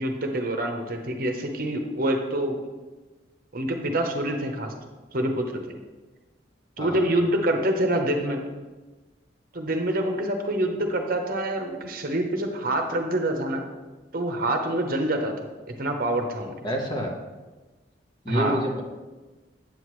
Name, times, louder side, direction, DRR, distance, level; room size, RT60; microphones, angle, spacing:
voice 1, 0.0-2.6 3.5-4.7 5.1-5.6 6.8-8.4 9.5-13.6 14.1-15.4 15.8-16.5 18.3-18.6, right 1 dB, 50° right, 4 dB, 0.9 m, -26 dB
voice 2, 16.6-17.1 18.2-18.8, equal, 25° left, -1 dB, 1.0 m, -28 dB
8.9 x 7.7 x 3.1 m, 1.2 s
head